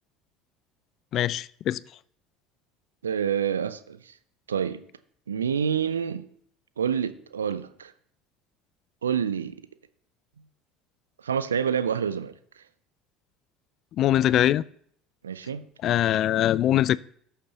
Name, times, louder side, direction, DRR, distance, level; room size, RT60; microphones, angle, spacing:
voice 1, 1.1-1.8 14.0-14.6 15.8-17.0, left 12 dB, 50° left, 0.3 m, -22 dB
voice 2, 3.0-4.1 4.5-4.9 5.3-6.3 6.8-7.9 9.0-9.6 11.2-12.3 15.2-15.6, right 7 dB, 80° right, 0.5 m, -27 dB
18.0 x 6.7 x 2.9 m
figure-of-eight pair, 65°, 0 cm